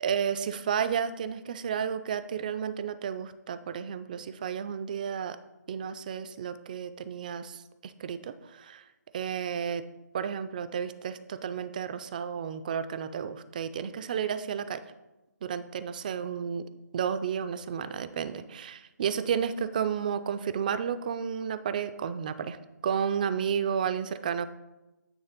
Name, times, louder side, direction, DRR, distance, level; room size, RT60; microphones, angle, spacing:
voice 1, 0.0-5.4 5.7-8.8 9.1-9.9 10.1-14.8 15.4-16.7 16.9-22.6 22.8-24.5, right 7 dB, 25° right, 12 dB, 0.3 m, -32 dB
9.5 x 3.2 x 5.7 m, 1.0 s
hypercardioid pair, 160°, 10 cm